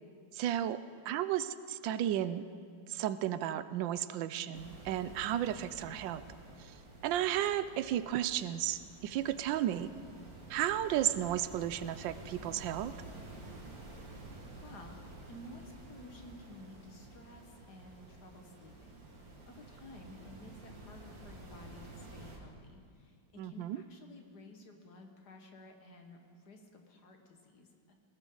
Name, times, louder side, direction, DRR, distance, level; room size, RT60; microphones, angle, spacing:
voice 1, 0.3-2.4 2.9-6.2 6.6-6.7 7.0-9.9 10.5-12.9 23.4-23.8, right 11 dB, 85° right, 13 dB, 1.3 m, -33 dB
sound 1, 4.5-22.4, right 2 dB, 50° right, 2.3 m, -51 dB
voice 2, 13.9-14.3 14.6-27.9, left 2 dB, 60° left, 3 dB, 2.0 m, -54 dB
20.0 x 18.0 x 3.9 m, 2.2 s
omnidirectional pair, 2.0 m